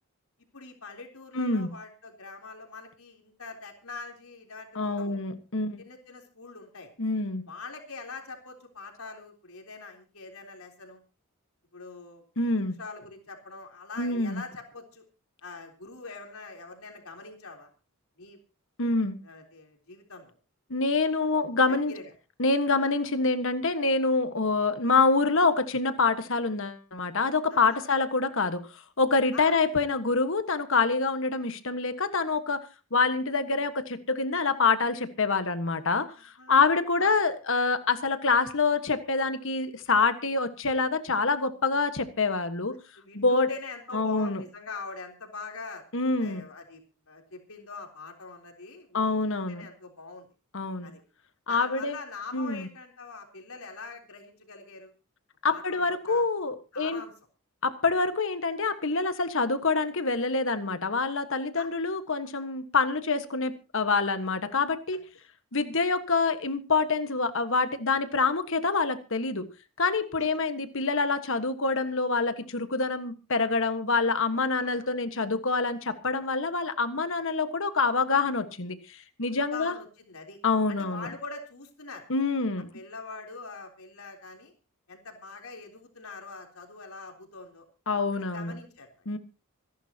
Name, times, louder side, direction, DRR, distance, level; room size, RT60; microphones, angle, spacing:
voice 1, 0.5-5.2 5.8-6.9 7.5-11.0 11.7-12.2 12.8-15.0 15.4-17.7 18.2-18.4 19.2-20.3 21.7-22.1 22.8-22.9 27.5-27.9 29.3-29.6 36.4-36.6 37.0-37.2 43.0-45.8 46.2-49.2 49.5-50.3 50.8-51.0 51.5-54.9 55.5-56.2 56.7-57.1 61.6-61.7 64.9-65.0 70.2-70.3 74.6-74.9 79.3-80.4 80.7-82.0 82.7-84.5 84.9-87.7 88.1-89.1, left 4 dB, 85° left, 2 dB, 3.6 m, -43 dB
voice 2, 1.3-1.7 4.7-5.8 7.0-7.5 12.4-12.8 14.0-14.4 18.8-19.2 20.7-21.9 22.4-32.6 32.9-42.7 43.1-43.5 43.9-44.4 45.9-46.4 48.9-49.7 50.5-50.9 51.5-52.0 52.3-52.7 55.4-57.0 57.6-65.0 65.5-69.5 69.8-79.7 80.4-81.1 82.1-82.7 87.9-88.6 89.0-89.2, left 4 dB, 65° left, 10 dB, 1.5 m, -26 dB
26.5 x 11.0 x 2.9 m, 0.32 s
head